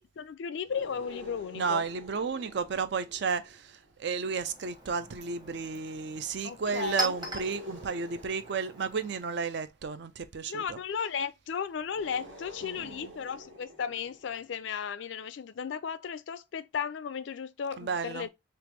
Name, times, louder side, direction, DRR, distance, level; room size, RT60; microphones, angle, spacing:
voice 1, 0.0-1.8 6.4-7.1 10.5-18.3, left 7 dB, 65° left, 0.4 m, -35 dB
sound 1, 0.6-4.2 6.5-9.6 11.9-14.6, equal, 85° right, 1.6 m, -49 dB
voice 2, 1.5-10.8 12.6-13.1 17.8-18.3, right 5 dB, 60° right, 0.4 m, -33 dB
Chink clink, 4.0-9.6, right 1 dB, 20° right, 0.9 m, -41 dB
3.4 x 2.9 x 3.1 m
head